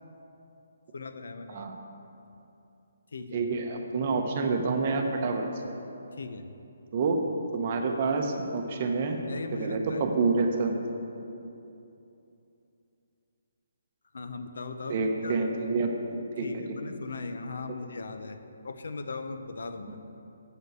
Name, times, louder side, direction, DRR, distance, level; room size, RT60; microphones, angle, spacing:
voice 1, 0.9-1.7 3.1-3.4 6.2-6.5 9.3-10.0 14.1-15.4 16.4-20.0, left 3 dB, 75° left, 8 dB, 0.6 m, -38 dB
voice 2, 3.3-5.7 6.9-7.2 7.5-9.2 9.5-10.8 14.9-15.9 16.4-16.6 17.7-17.8 19.9-20.0, right 4 dB, 30° right, 3 dB, 0.7 m, -28 dB
7.7 x 5.6 x 7.5 m, 2.8 s
hypercardioid pair, 175°, 0 cm